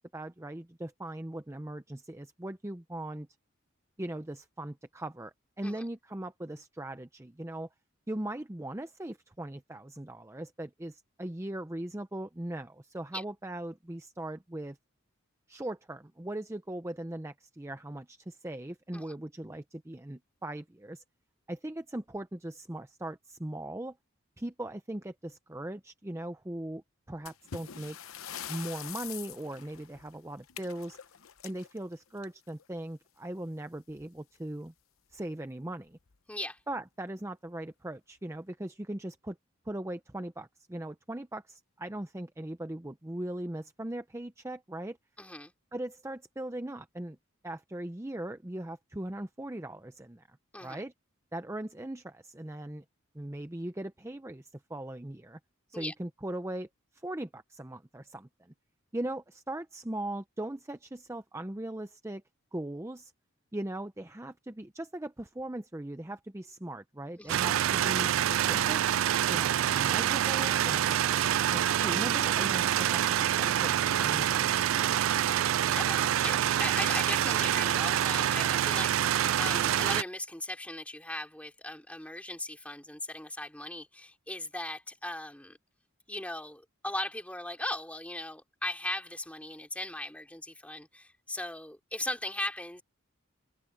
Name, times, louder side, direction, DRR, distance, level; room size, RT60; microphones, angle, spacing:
voice 1, 0.0-3.3 4.0-7.7 8.1-14.8 15.5-21.0 21.5-24.0 24.4-26.8 27.1-28.0 28.5-31.0 31.4-34.7 35.1-36.0 36.7-39.4 39.7-45.0 45.7-47.2 47.4-50.4 50.6-50.9 51.3-52.8 53.1-55.4 55.7-56.7 57.0-58.5 58.9-62.2 62.5-63.1 63.5-68.8 69.3-75.4, right 1 dB, 15° right, 0.6 m, -39 dB
sound 1, 27.3-32.6 33.9-34.1 34.4-34.5 35.1-35.2 35.9-36.2, left 10 dB, 85° left, 0.8 m, -44 dB
voice 2, 36.3-36.6 45.2-45.5 50.5-50.8 55.7-55.9 67.2-67.4 75.7-85.6 86.1-92.8, left 1 dB, 5° left, 3.0 m, -38 dB
sound 2, 67.3-80.0, right 11 dB, 75° right, 0.4 m, -26 dB
head